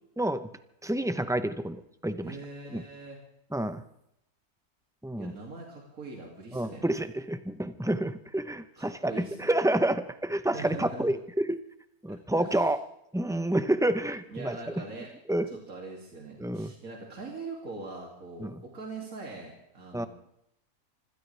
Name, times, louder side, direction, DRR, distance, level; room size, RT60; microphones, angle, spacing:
voice 1, 0.2-0.5 0.8-2.4 2.7-2.8 3.5-3.8 5.0-5.3 6.5-11.6 12.0-12.8 13.1-14.6 15.3-15.5 16.4-16.7 18.4-18.6 19.9-20.1, right 1 dB, 5° right, 10 dB, 0.3 m, -29 dB
voice 2, 2.2-3.2 5.2-6.9 8.8-9.5 10.5-11.1 12.1-12.7 14.3-15.1 15.5-20.1, right 3 dB, 65° right, -1 dB, 3.1 m, -42 dB
25.5 x 16.0 x 3.4 m, 0.77 s
omnidirectional pair, 1.6 m